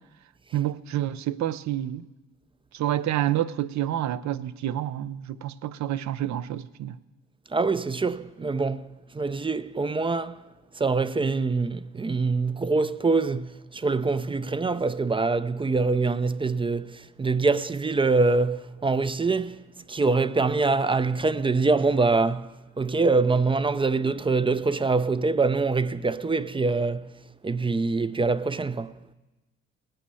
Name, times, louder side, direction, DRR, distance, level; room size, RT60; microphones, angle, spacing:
voice 1, 0.5-2.1 2.7-7.0, right 12 dB, 65° right, 0.6 m, -28 dB
voice 2, 7.5-10.4 10.8-19.6 19.9-27.1 27.4-28.9, right 3 dB, 15° right, 0.4 m, -24 dB
18.5 x 9.2 x 5.6 m
cardioid pair, 90°, 30 cm